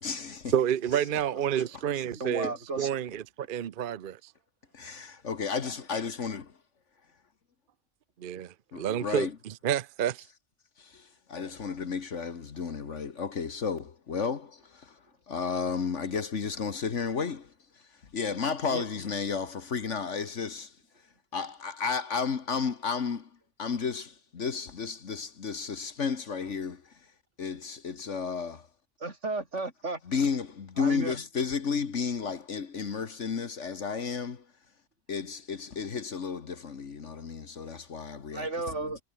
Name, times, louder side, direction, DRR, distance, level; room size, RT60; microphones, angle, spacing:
voice 1, 0.0-0.5 1.1-1.2 1.6-1.8 2.4-2.6 4.7-6.6 8.7-9.4 10.8-21.1 21.3-27.1 27.4-28.7 30.0-34.5 35.1-38.5 38.8-38.9, left 5 dB, 70° left, 1.8 m, -33 dB
voice 2, 0.5-4.2 8.2-9.3 9.6-10.2, right 9 dB, 50° right, 0.8 m, -29 dB
voice 3, 2.0-2.9 18.7-18.8 29.0-30.0 30.8-31.1 38.3-39.0, right 3 dB, 65° right, 4.1 m, -34 dB
omnidirectional pair, 1.3 m